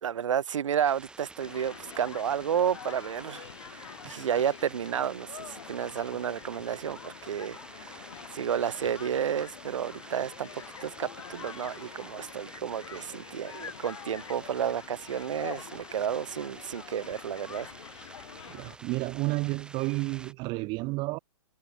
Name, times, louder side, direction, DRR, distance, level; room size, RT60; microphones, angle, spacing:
voice 1, 0.0-3.5 3.7-8.0 8.3-17.7, right 9 dB, 85° right, 0.7 m, -31 dB
sound 1, 0.8-20.3, right 3 dB, 5° right, 1.9 m, -50 dB
Human group actions, 1.4-18.7, left 8 dB, 75° left, 7.1 m, -46 dB
voice 2, 18.5-21.2, right 24 dB, 30° right, 0.6 m, -31 dB
hypercardioid pair, 140°, 16 cm